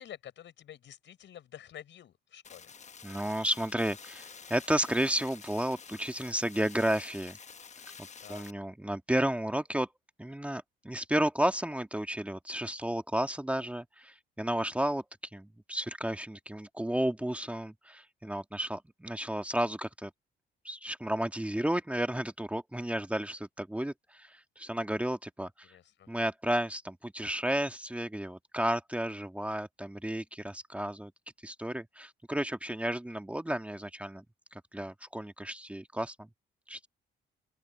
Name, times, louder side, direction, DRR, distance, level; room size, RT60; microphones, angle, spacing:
voice 1, 0.0-2.7 8.2-8.4 25.6-26.1, left 10 dB, 70° left, 6.0 m, -49 dB
sound 1, 2.4-8.5, left 6 dB, 35° left, 1.1 m, -49 dB
voice 2, 3.0-7.4 8.0-9.9 10.2-15.0 15.3-20.1 20.6-25.7 26.1-31.1 31.4-34.2 34.5-36.3 36.7-36.9, right 1 dB, 5° right, 1.5 m, -32 dB
open air
cardioid pair, 90°, 20 cm